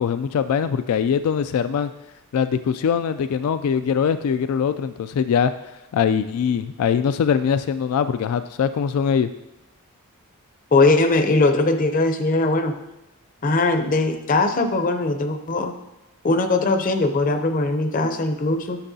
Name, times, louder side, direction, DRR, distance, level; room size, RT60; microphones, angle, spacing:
voice 1, 0.0-1.9 2.3-5.5 5.9-9.3, left 7 dB, 75° left, 13 dB, 0.3 m, -22 dB
voice 2, 10.7-12.7 13.4-15.7 16.2-18.8, left 2 dB, 35° left, 7 dB, 0.6 m, -20 dB
9.8 x 6.6 x 2.7 m, 0.97 s
head